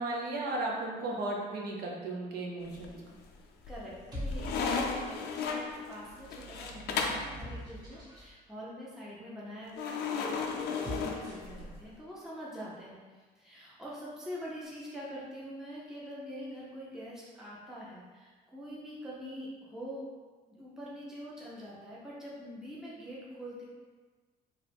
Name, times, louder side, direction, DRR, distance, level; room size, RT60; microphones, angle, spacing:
voice 1, 0.0-2.9, right 2 dB, 65° right, -1 dB, 0.7 m, -35 dB
sound 1, 2.6-3.2 3.6-7.3 9.8-11.8, left 5 dB, 75° left, 0.4 m, -35 dB
sound 2, 2.6-3.1 3.9-5.2 6.0-8.3 10.6-11.6, equal, 25° right, 1.3 m, -43 dB
voice 2, 3.7-20.1 20.5-23.6, equal, 5° right, -7 dB, 0.6 m, -44 dB
2.9 x 2.4 x 3.4 m, 1.4 s
cardioid pair, 110°, 17 cm